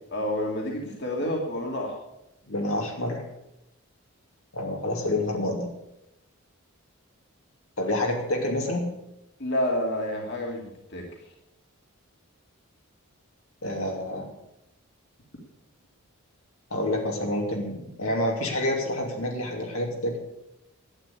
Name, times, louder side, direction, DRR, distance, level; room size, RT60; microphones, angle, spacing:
voice 1, 0.1-2.0 9.4-11.1, left 1 dB, 55° left, 0 dB, 2.6 m, -29 dB
voice 2, 2.5-3.2 4.5-5.7 7.8-8.9 13.6-14.3 16.7-20.2, left 1 dB, 75° left, 0 dB, 3.0 m, -28 dB
11.5 x 9.3 x 8.4 m, 0.86 s
head